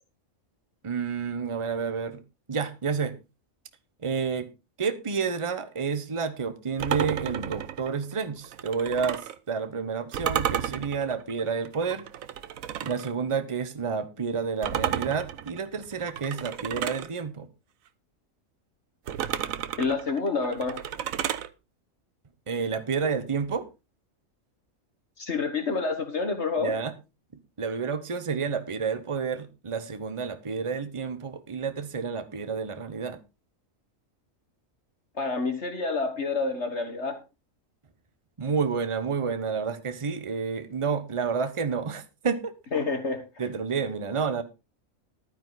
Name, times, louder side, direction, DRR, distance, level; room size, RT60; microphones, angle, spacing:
voice 1, 0.8-2.2 2.5-3.1 4.0-4.5 4.8-9.2 9.5-12.0 12.8-17.5 22.5-23.7 26.6-26.9 27.6-33.2 38.4-42.5 43.4-44.4, right 5 dB, 25° right, 1.0 m, -30 dB
sound 1, 6.8-9.4 10.1-13.1 14.6-17.1 19.1-21.5, right 9 dB, 80° right, 1.2 m, -32 dB
voice 2, 19.8-20.8 25.2-26.8 35.2-37.2 42.7-43.2, left 4 dB, 55° left, 2.0 m, -28 dB
12.5 x 9.3 x 4.0 m
omnidirectional pair, 1.4 m